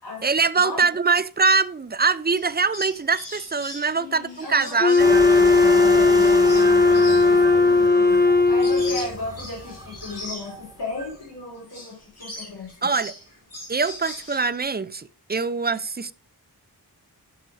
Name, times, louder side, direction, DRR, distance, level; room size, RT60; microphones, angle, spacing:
voice 1, 0.2-5.1 12.8-13.1 13.7-16.1, right 4 dB, 25° right, 0.5 m, -23 dB
sound 1, 2.3-11.3 11.6-14.6, left 1 dB, 40° left, 4.9 m, -40 dB
voice 2, 4.0-4.8 5.8-6.2 6.5-12.7, left 2 dB, 75° left, 4.5 m, -36 dB
Wind instrument woodwind instrument, 4.8-9.1, left 3 dB, 25° left, 1.2 m, -17 dB
sound 2, 5.0-11.2, right 1 dB, 10° right, 1.4 m, -32 dB
11.5 x 6.6 x 3.2 m
wide cardioid pair, 80°, 40 cm